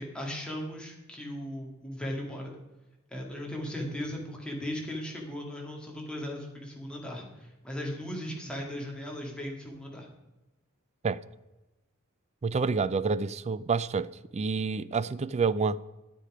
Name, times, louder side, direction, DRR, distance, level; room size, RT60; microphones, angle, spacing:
voice 1, 0.0-2.5 3.1-10.1, left 1 dB, 5° left, 2.1 m, -37 dB
voice 2, 12.4-15.8, right 4 dB, 30° right, 0.3 m, -28 dB
10.0 x 9.7 x 4.9 m
head